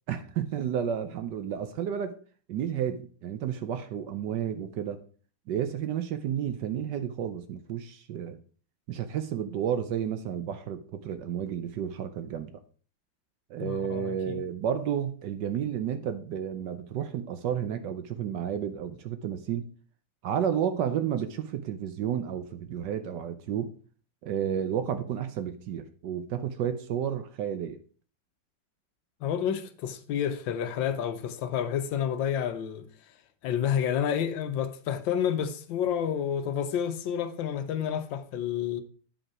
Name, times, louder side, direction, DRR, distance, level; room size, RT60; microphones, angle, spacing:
voice 1, 0.1-2.2 2.5-5.0 5.5-8.4 8.9-12.6 13.5-19.7 20.2-23.7 24.2-27.8, right 9 dB, 70° right, 1.2 m, -31 dB
voice 2, 13.6-14.4 29.2-32.9 33.4-38.8, left 9 dB, 75° left, 1.4 m, -29 dB
8.9 x 5.2 x 4.7 m
omnidirectional pair, 2.2 m